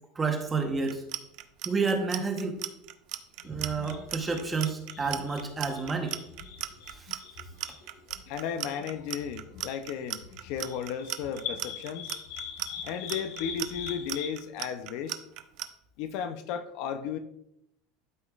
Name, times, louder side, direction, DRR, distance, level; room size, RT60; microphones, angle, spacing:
voice 1, 0.2-1.0 1.6-2.6 3.4-6.2 7.1-7.2, right 4 dB, 15° right, 4 dB, 0.9 m, -30 dB
Clock, 0.8-15.7, right 15 dB, 45° right, 0.5 m, -36 dB
sound 1, 3.4-14.3, left 7 dB, 70° left, 1.1 m, -43 dB
voice 2, 8.3-12.1 12.8-15.2 16.0-17.2, left 7 dB, 50° left, 10 dB, 0.5 m, -34 dB
12.5 x 5.1 x 2.4 m, 0.79 s
supercardioid pair, 170°, 0 cm